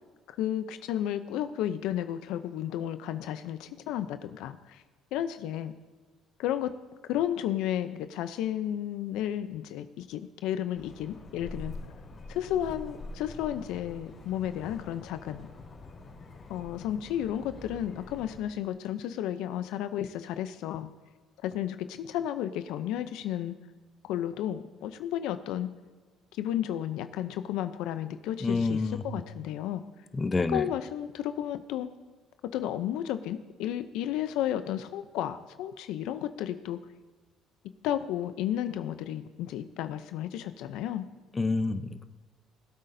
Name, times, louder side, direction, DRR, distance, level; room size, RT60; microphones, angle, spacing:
voice 1, 0.3-4.8 5.1-5.7 6.4-6.7 7.1-11.7 12.3-15.5 16.5-20.9 21.4-23.5 24.0-25.7 26.4-29.8 30.5-31.9 32.4-36.8 37.8-41.1, left 11 dB, 80° left, 11 dB, 0.5 m, -32 dB
sound 1, 10.7-18.4, left 2 dB, 45° left, 3.5 m, -45 dB
voice 2, 28.4-29.0 30.1-30.6 41.3-42.1, left 3 dB, 20° left, 10 dB, 0.7 m, -28 dB
20.5 x 8.4 x 2.7 m, 1.4 s
supercardioid pair, 90°, 0 cm